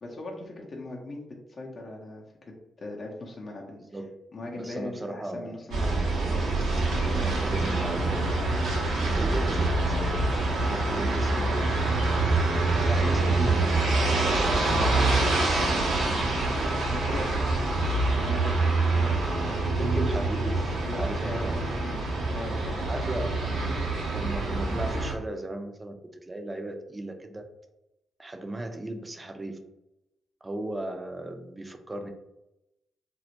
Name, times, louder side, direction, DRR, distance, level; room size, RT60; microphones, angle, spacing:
voice 1, 0.0-3.8 4.3-6.1 13.0-13.2 16.5-17.3 17.6-18.7 18.9-19.8 20.8-22.0 22.3-23.1, left 2 dB, 50° left, -1 dB, 0.5 m, -39 dB
voice 2, 4.5-5.5 7.0-8.3 8.9-11.5 12.7-13.9 14.2-15.5 17.3-17.6 19.8-21.5 22.9-23.8 24.1-27.4 28.2-29.6 30.4-32.1, right 1 dB, 25° right, 6 dB, 0.4 m, -36 dB
sound 1, 5.7-25.1, right 2 dB, 70° right, 0.6 m, -26 dB
2.2 x 2.0 x 2.8 m, 0.91 s
hypercardioid pair, 40°, 0 cm